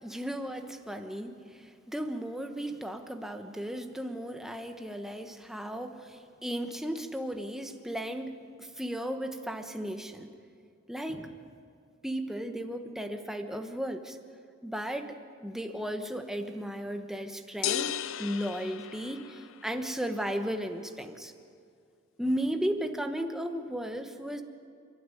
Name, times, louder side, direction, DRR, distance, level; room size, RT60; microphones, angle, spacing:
voice 1, 0.0-10.3 10.9-11.4 12.0-14.2 14.6-17.9 18.2-21.3 22.2-24.4, equal, ahead, 5 dB, 1.1 m, -35 dB
sound 1, 17.6-19.7, left 10 dB, 65° left, 0.5 m, -34 dB
28.5 x 12.0 x 9.2 m, 2.3 s
head